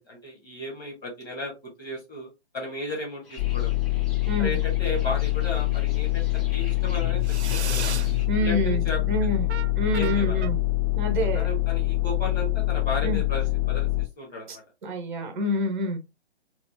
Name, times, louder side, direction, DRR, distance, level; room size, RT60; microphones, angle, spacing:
voice 1, 0.0-1.5 1.8-2.3 2.5-3.7 4.4-7.2 7.5-7.9 8.4-9.0 9.9-10.5 11.3-14.6, left 1 dB, 10° left, -3 dB, 1.4 m, -34 dB
sound 1, 3.2-8.3, left 5 dB, 60° left, 1.4 m, -41 dB
sound 2, 3.4-14.0, left 19 dB, 35° left, 1.4 m, -25 dB
voice 2, 4.3-4.6 8.3-9.4 9.7-10.6 11.0-11.5 13.0-13.2 14.5-14.6 14.8-16.0, equal, 5° right, 3 dB, 0.6 m, -27 dB
sound 3, 4.9-5.5 7.2-8.1 9.5-10.5, right 8 dB, 90° right, 0.5 m, -35 dB
4.2 x 2.4 x 2.7 m, 0.23 s
figure-of-eight pair, 140°, 33 cm